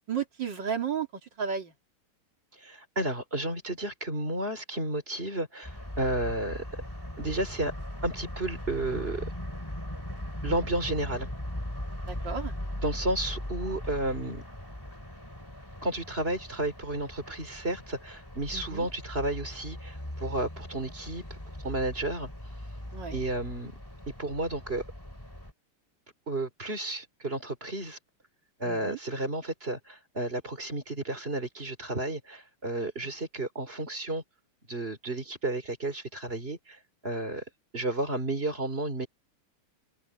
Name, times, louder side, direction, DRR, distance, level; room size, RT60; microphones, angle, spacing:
voice 1, 0.1-1.1 1.4-1.7 12.1-12.5 18.5-18.9 22.9-23.2 28.6-29.0, right 7 dB, 55° right, 3.0 m, -33 dB
voice 2, 2.6-6.7 7.2-7.7 8.0-9.3 10.4-11.3 12.8-14.4 15.8-22.3 23.1-23.8 24.2-24.8 26.3-28.0 28.6-34.2 34.7-37.4 37.7-39.1, right 2 dB, 25° right, 4.0 m, -32 dB
sound 1, 5.6-25.5, left 1 dB, 10° left, 3.5 m, -39 dB
omnidirectional pair, 2.4 m